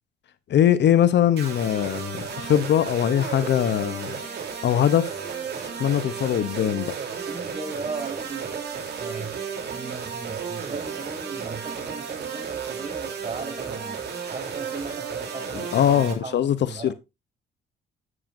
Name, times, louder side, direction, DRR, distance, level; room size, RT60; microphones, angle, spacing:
voice 1, 0.5-4.2 4.6-5.1 5.8-7.0 15.7-16.9, left 10 dB, 60° left, 0.8 m, -21 dB
sound 1, 1.4-16.1, right 6 dB, 55° right, 3.3 m, -33 dB
voice 2, 7.1-14.0 14.3-16.9, right 4 dB, 30° right, 6.5 m, -37 dB
11.0 x 8.9 x 2.6 m
cardioid pair, 90°, 20 cm